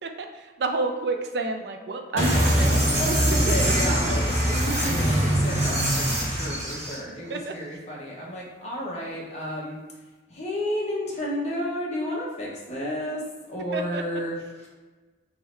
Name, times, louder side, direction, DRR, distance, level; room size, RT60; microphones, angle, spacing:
voice 1, 0.0-3.2 3.6-4.1 7.3-7.6 13.7-14.0, right 3 dB, 65° right, 5 dB, 0.4 m, -30 dB
sound 1, 2.2-7.0, right 1 dB, 40° right, 1.2 m, -23 dB
voice 2, 3.0-9.8 10.3-13.2 13.5-14.7, equal, 40° left, -4 dB, 1.1 m, -32 dB
3.6 x 3.2 x 4.5 m, 1.3 s
head